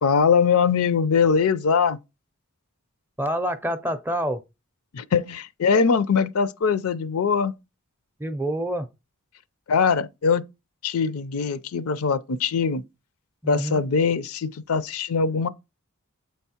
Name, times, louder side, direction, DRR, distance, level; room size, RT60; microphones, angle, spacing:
voice 1, 0.0-2.0 4.9-7.5 9.7-10.4 10.8-12.8 13.5-15.5, left 5 dB, 70° left, 0.4 m, -22 dB
voice 2, 3.2-4.4 8.2-8.9 13.4-13.9, equal, 10° right, 0.4 m, -27 dB
7.4 x 4.5 x 2.8 m
head